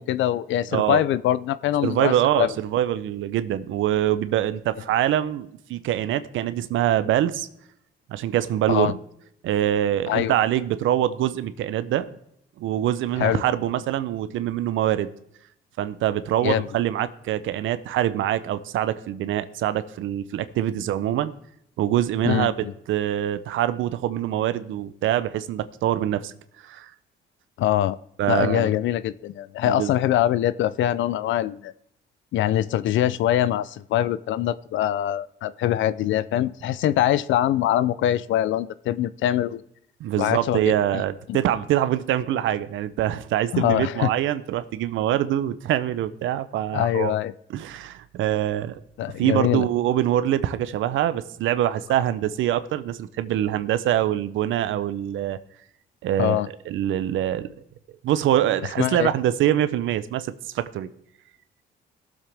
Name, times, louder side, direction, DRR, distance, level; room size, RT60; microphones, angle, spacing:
voice 1, 0.0-2.5 8.7-8.9 10.1-10.3 13.2-13.4 16.4-16.7 22.2-22.7 27.6-28.0 28.3-31.7 32.3-39.6 40.2-41.0 41.3-41.4 43.5-44.1 46.7-47.3 49.0-49.7 56.2-56.5 58.8-59.1, left 12 dB, 75° left, 16 dB, 0.4 m, -23 dB
voice 2, 0.7-1.0 1.8-7.5 8.1-9.0 9.4-12.1 12.6-15.1 15.8-21.3 21.8-26.3 26.6-26.9 28.2-28.7 29.6-29.9 40.0-47.1 47.5-48.8 49.2-55.4 56.0-57.5 58.0-60.9, right 12 dB, 80° right, 13 dB, 0.6 m, -24 dB
17.0 x 7.3 x 3.4 m, 0.74 s
cardioid pair, 90°, 20 cm